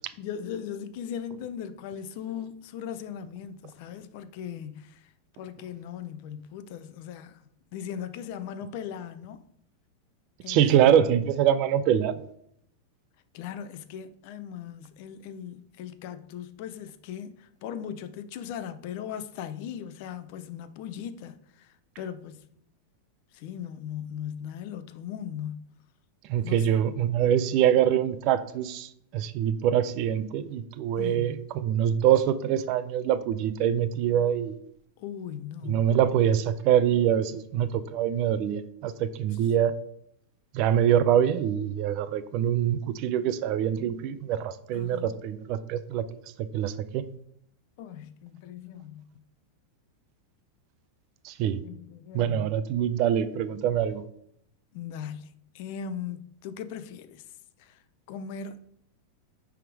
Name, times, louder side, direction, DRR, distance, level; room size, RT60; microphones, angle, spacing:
voice 1, 0.2-5.1 5.4-7.4 7.7-9.4 10.4-11.0 13.3-22.4 23.3-25.7 26.4-26.7 31.0-31.4 35.0-35.8 44.7-45.2 47.8-49.0 51.6-52.5 54.7-57.2 57.6-57.8 58.1-58.7, left 8 dB, 50° left, 0.6 m, -38 dB
voice 2, 10.5-12.2 26.3-34.5 35.6-39.7 40.5-46.0 46.5-47.0 51.2-51.6 52.1-54.0, right 10 dB, 45° right, 0.5 m, -24 dB
9.3 x 3.6 x 4.7 m
supercardioid pair, 155°, 0 cm